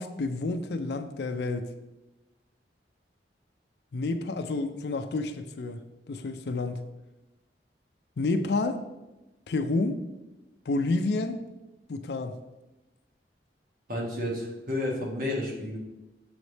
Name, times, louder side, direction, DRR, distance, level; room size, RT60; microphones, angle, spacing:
voice 1, 0.0-1.7 3.9-5.8 6.1-6.8 8.2-8.8 9.5-10.0 10.7-11.4 11.9-12.4, left 3 dB, 65° left, 9 dB, 0.4 m, -29 dB
voice 2, 13.9-15.8, left 1 dB, 50° right, -3 dB, 1.5 m, -31 dB
7.1 x 4.0 x 3.3 m, 1.0 s
head